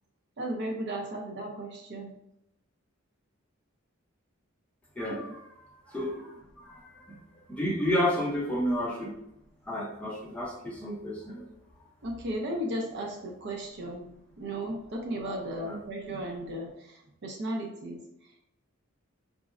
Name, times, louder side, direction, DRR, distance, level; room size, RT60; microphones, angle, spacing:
voice 1, 0.4-2.1 5.1-5.2 12.0-14.1 14.4-18.0, right 1 dB, 55° right, 0 dB, 0.5 m, -35 dB
voice 2, 5.0-5.3 5.9-7.2 7.5-9.1 9.7-11.4 15.6-15.8, left 1 dB, 5° left, -4 dB, 0.6 m, -31 dB
3.6 x 2.0 x 2.4 m, 0.80 s
head